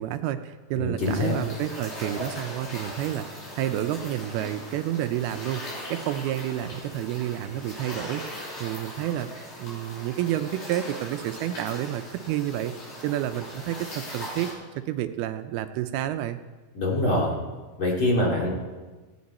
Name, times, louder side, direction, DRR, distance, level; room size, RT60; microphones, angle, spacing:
voice 1, 0.0-5.6 5.9-8.2 8.6-9.3 9.6-12.7 13.0-14.5 14.9-16.4, right 12 dB, 80° right, 9 dB, 2.5 m, -29 dB
voice 2, 0.7-1.3 16.7-17.3 17.8-18.5, left 1 dB, 35° left, -3 dB, 2.7 m, -24 dB
sound 1, 1.0-14.5, left 1 dB, 70° left, 8.9 m, -40 dB
19.0 x 15.5 x 4.2 m, 1.3 s
omnidirectional pair, 4.6 m